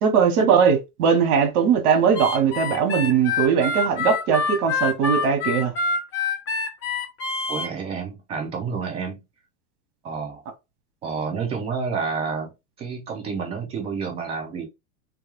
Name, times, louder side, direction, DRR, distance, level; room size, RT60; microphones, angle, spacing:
voice 1, 0.0-5.7, right 7 dB, 75° right, 0.9 m, -20 dB
Harmonica, 2.1-7.7, left 4 dB, 30° left, 0.8 m, -26 dB
voice 2, 7.5-9.2 10.0-10.4 11.0-12.5 12.8-14.7, right 5 dB, 15° right, 0.3 m, -29 dB
2.3 x 2.2 x 2.9 m
supercardioid pair, 140°, 44 cm